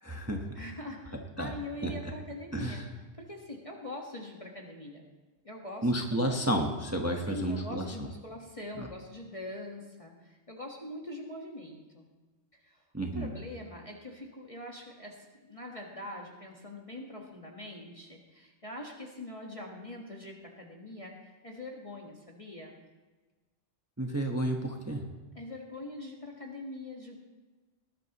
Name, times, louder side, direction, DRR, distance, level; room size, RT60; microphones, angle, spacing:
voice 1, 0.0-0.5 1.4-1.5 1.8-1.9 2.5-2.8 5.8-7.8 12.9-13.3 24.0-25.1, right 1 dB, 15° right, 2 dB, 1.0 m, -31 dB
voice 2, 0.5-2.8 3.2-5.0 5.4-6.3 7.3-12.1 12.5-12.8 13.1-22.8 25.3-27.2, left 1 dB, 25° left, -1 dB, 1.5 m, -43 dB
19.5 x 11.0 x 3.0 m, 1.3 s
omnidirectional pair, 1.3 m